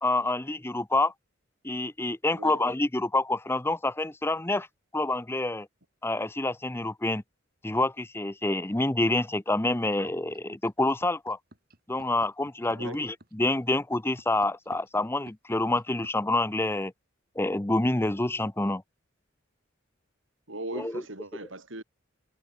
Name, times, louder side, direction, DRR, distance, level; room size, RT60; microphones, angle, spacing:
voice 1, 0.0-1.1 1.6-4.7 4.9-5.7 6.0-7.2 7.6-11.4 11.9-16.9 17.4-18.8 20.7-21.0, left 2 dB, 10° left, 0.8 m, -27 dB
sound 1, 9.9-16.1, right 1 dB, 50° right, 7.6 m, -51 dB
voice 2, 20.5-21.8, right 2 dB, 75° right, 6.5 m, -38 dB
head